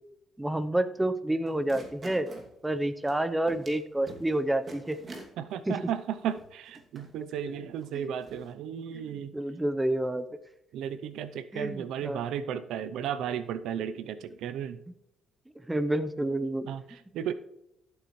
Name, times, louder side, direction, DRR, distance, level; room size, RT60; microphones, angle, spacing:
voice 1, 0.4-2.3 2.6-5.0 5.7-5.8 7.5-7.6 7.9-8.1 9.1-10.2 11.5-12.2 15.7-16.7, right 1 dB, 10° right, 12 dB, 0.8 m, -29 dB
sound 1, 1.5-2.5 3.1-3.2 3.5-3.8 4.1-4.4 4.7-5.3 5.9-6.0 6.3-7.1 7.8-7.9 8.2-8.5, right 2 dB, 40° right, 2.5 m, -45 dB
voice 2, 5.4-9.3 10.7-14.8 16.7-17.3, right 9 dB, 85° right, 13 dB, 0.6 m, -34 dB
13.5 x 8.1 x 3.2 m, 0.85 s
cardioid pair, 90°, 0 cm